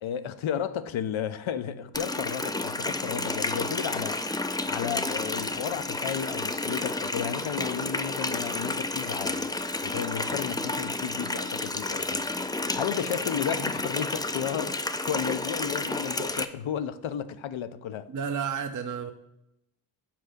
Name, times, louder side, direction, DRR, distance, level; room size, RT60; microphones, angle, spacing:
voice 1, 0.0-9.5 9.8-12.3 12.7-18.1, left 9 dB, 75° left, 0.6 m, -33 dB
Water tap faucet, 1.9-16.4, left 2 dB, 10° left, 0.4 m, -31 dB
voice 2, 18.1-19.1, right 6 dB, 40° right, 0.7 m, -31 dB
5.9 x 4.7 x 6.5 m
cardioid pair, 60°, 47 cm